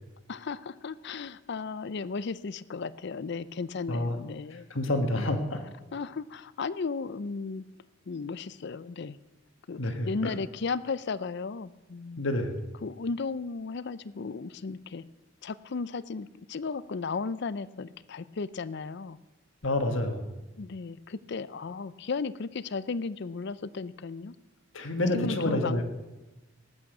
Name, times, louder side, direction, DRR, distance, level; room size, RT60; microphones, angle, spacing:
voice 1, 0.3-4.7 5.2-5.3 5.9-7.6 8.1-9.2 9.7-12.2 12.8-15.0 15.4-19.2 20.6-24.3 25.1-25.8, left 4 dB, 60° left, 17 dB, 0.5 m, -35 dB
voice 2, 4.7-5.6 9.8-10.3 12.2-12.6 19.6-20.3 24.7-25.8, left 1 dB, 75° left, 5 dB, 1.6 m, -28 dB
18.5 x 8.6 x 6.1 m, 1.1 s
head